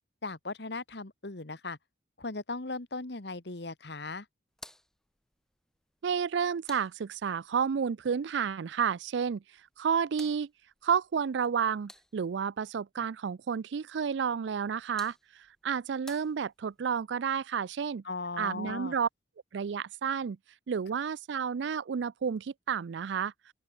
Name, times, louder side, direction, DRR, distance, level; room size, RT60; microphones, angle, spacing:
voice 1, 0.2-1.8 2.2-4.2 18.0-19.0, left 3 dB, 60° left, 1.6 m, -38 dB
sound 1, 4.5-7.6 9.6-12.5 14.5-16.9, left 1 dB, 5° left, 7.0 m, -56 dB
voice 2, 6.0-9.4 9.8-10.5 10.8-15.1 15.6-18.0 18.4-19.1 19.5-20.4 20.7-23.3, right 7 dB, 70° right, 0.4 m, -31 dB
open air
head